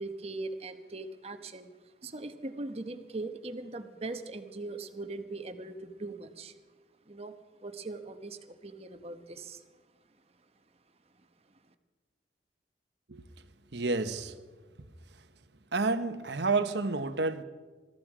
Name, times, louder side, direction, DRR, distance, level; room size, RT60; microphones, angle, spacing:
voice 1, 0.0-6.5 7.1-7.3 7.6-9.6 11.1-11.6, right 2 dB, 35° right, 1.1 m, -40 dB
voice 2, 13.7-14.4 15.7-17.4, right 3 dB, 70° right, 1.0 m, -29 dB
22.0 x 13.5 x 5.0 m
head